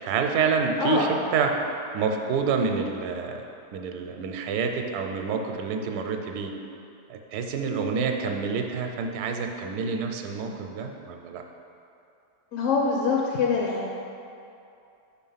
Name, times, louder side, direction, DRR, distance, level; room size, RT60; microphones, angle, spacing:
voice 1, 0.0-1.5 1.9-3.4 3.7-6.5 7.1-11.4, right 5 dB, 75° right, 4 dB, 1.1 m, -28 dB
voice 2, 0.8-1.1 12.5-13.9, left 4 dB, 65° left, -2 dB, 0.9 m, -24 dB
5.3 x 4.4 x 5.6 m, 2.7 s
omnidirectional pair, 1.7 m